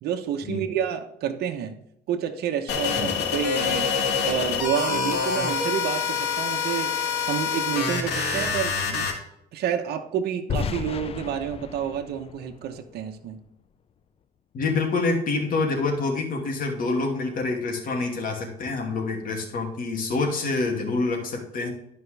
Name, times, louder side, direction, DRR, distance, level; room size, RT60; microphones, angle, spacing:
voice 1, 0.0-1.7 2.1-3.9 4.2-6.9 7.3-9.1 9.5-13.4, right 9 dB, 70° right, 4 dB, 1.1 m, -29 dB
sound 1, 2.7-9.1, left 5 dB, 80° left, 2.4 m, -26 dB
sound 2, 10.5-13.5, left 6 dB, 35° left, 0.5 m, -34 dB
voice 2, 14.5-21.7, left 3 dB, 55° left, 1 dB, 2.6 m, -26 dB
12.0 x 5.3 x 3.4 m, 0.78 s
cardioid pair, 110°, 17 cm